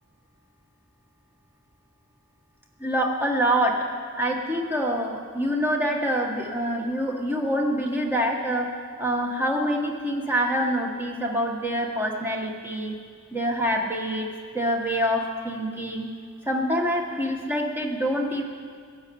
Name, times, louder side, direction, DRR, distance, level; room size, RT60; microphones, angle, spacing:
voice 1, 2.8-3.7 4.2-8.7 9.0-12.9 13.3-14.3 14.5-16.1 16.5-18.4, equal, 10° right, 1 dB, 1.4 m, -25 dB
16.5 x 8.3 x 7.0 m, 2.1 s
head